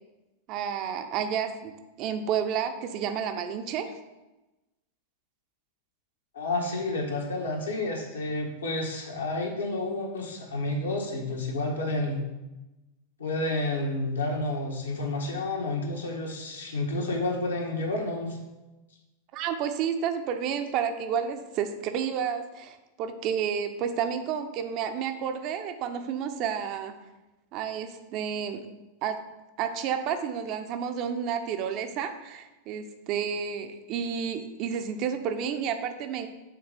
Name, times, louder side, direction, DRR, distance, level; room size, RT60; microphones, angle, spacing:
voice 1, 0.5-3.9 19.3-26.9 27.5-28.6 29.0-29.2 29.6-36.3, right 8 dB, 40° right, 7 dB, 0.6 m, -31 dB
voice 2, 6.3-12.2 13.2-18.4, left 2 dB, 70° left, -1 dB, 1.6 m, -30 dB
6.6 x 4.0 x 5.3 m, 1.0 s
figure-of-eight pair, 90°, 0 cm